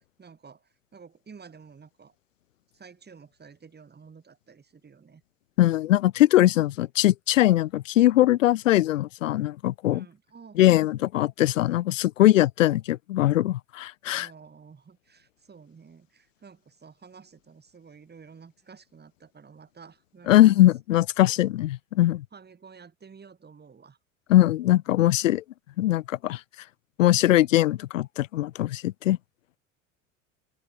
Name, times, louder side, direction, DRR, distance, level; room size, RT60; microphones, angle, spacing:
voice 1, 0.0-2.1 2.7-5.2 9.9-10.6 14.1-20.5 22.3-24.0, right 5 dB, 25° right, 6.3 m, -51 dB
voice 2, 5.6-10.0 10.6-14.3 20.3-22.2 24.3-25.4 25.8-26.4 27.0-29.2, left 14 dB, 85° left, 0.5 m, -21 dB
open air
hypercardioid pair, 70°, 37 cm